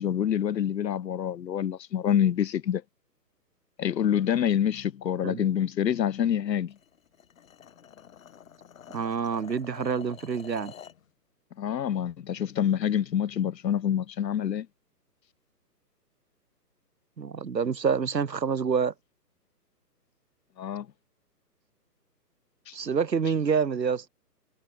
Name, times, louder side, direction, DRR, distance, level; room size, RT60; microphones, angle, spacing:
voice 1, 0.0-2.8 3.8-6.7 11.6-14.7 20.6-20.9 22.7-22.8, left 9 dB, 90° left, 0.8 m, -26 dB
sound 1, 6.7-11.0, left 8 dB, 55° left, 5.0 m, -48 dB
voice 2, 8.9-10.7 17.2-18.9 22.7-24.1, right 6 dB, 85° right, 2.0 m, -27 dB
hypercardioid pair, 155°, 49 cm